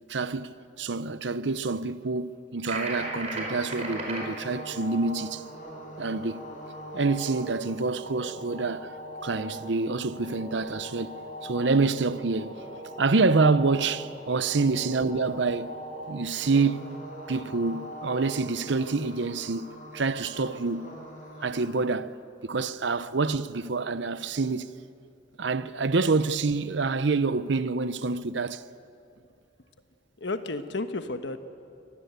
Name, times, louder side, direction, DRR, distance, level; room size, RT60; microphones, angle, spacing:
voice 1, 0.1-0.5 0.8-5.4 6.0-6.4 6.9-8.9 9.2-11.1 11.4-12.5 13.0-15.7 16.1-16.8 17.3-19.7 19.9-20.9 21.4-22.2 22.4-24.7 25.4-28.6, right 3 dB, 70° right, 0.7 m, -27 dB
sound 1, 2.6-4.2, right 2 dB, 35° right, 4.9 m, -34 dB
sound 2, 2.9-21.7, right 1 dB, 45° left, 4.7 m, -42 dB
voice 2, 30.2-31.4, left 2 dB, 70° left, 1.3 m, -32 dB
24.5 x 18.5 x 8.1 m
head